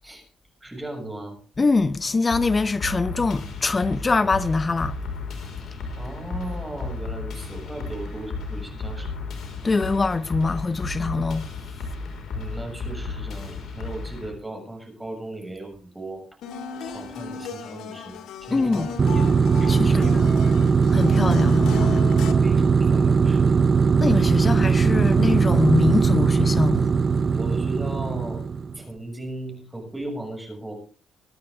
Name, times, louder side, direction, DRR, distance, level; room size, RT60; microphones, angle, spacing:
voice 1, 0.6-1.4 6.0-9.1 12.3-16.2 16.8-19.3 19.6-20.5 22.4-23.6 27.3-28.4 28.7-30.7, right 2 dB, 10° right, 6.8 m, -36 dB
voice 2, 1.6-5.0 9.6-11.5 18.5-19.0 19.7-20.3 20.9-22.1 24.0-26.9, left 3 dB, 30° left, 0.8 m, -23 dB
sound 1, 2.3-14.3, left 3 dB, 60° left, 5.3 m, -34 dB
sound 2, 16.4-22.3, left 6 dB, 80° left, 2.3 m, -35 dB
sound 3, 19.0-28.8, right 5 dB, 40° right, 0.8 m, -19 dB
23.5 x 9.6 x 3.7 m
cardioid pair, 90°, 0 cm